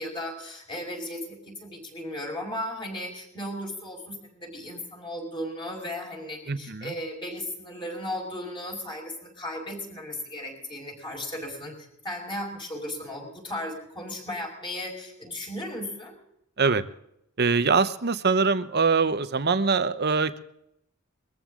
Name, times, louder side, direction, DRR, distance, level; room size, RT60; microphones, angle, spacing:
voice 1, 0.0-16.2, left 1 dB, 25° left, 1 dB, 5.2 m, -36 dB
voice 2, 6.5-6.9 16.6-16.8 17.4-20.4, right 4 dB, 50° right, 12 dB, 0.9 m, -23 dB
22.0 x 14.5 x 3.8 m, 0.78 s
head